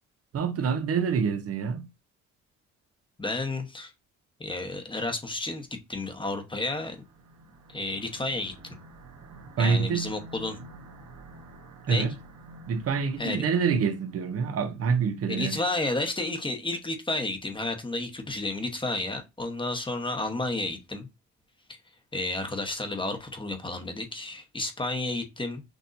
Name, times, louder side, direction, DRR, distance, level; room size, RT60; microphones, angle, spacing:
voice 1, 0.3-1.9 9.6-10.1 11.9-12.1 12.7-15.6, right 6 dB, 50° right, 0.8 m, -26 dB
voice 2, 3.2-3.9 4.4-7.0 7.7-8.8 9.6-10.6 11.9-12.1 13.2-13.5 15.3-21.1 22.1-25.6, left 2 dB, 15° left, 1.0 m, -31 dB
sound 1, 6.4-15.0, right 1 dB, 70° right, 1.1 m, -49 dB
6.4 x 2.7 x 2.6 m
cardioid pair, 90°, 30 cm